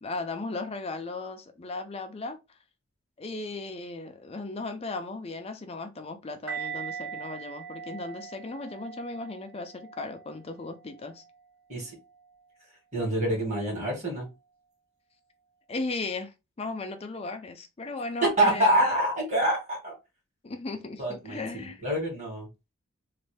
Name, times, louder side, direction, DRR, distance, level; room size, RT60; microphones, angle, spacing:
voice 1, 0.0-2.4 3.2-11.2 15.7-18.8 20.4-21.8, left 3 dB, 25° left, 0.4 m, -36 dB
sound 1, 6.5-11.4 12.1-12.3, right 6 dB, 65° right, 1.3 m, -41 dB
voice 2, 12.9-14.3 18.2-19.9 21.0-22.5, right 1 dB, 35° right, 1.9 m, -26 dB
3.1 x 2.5 x 3.3 m
head